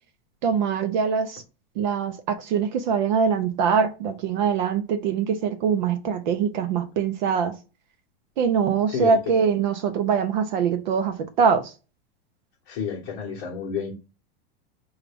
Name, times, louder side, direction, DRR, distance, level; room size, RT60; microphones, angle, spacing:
voice 1, 0.4-1.4 1.8-7.6 8.4-11.7, right 6 dB, 50° right, 0.5 m, -23 dB
voice 2, 12.7-13.9, left 6 dB, 40° left, 0.9 m, -30 dB
5.0 x 2.3 x 3.3 m
supercardioid pair, 175°, 30 cm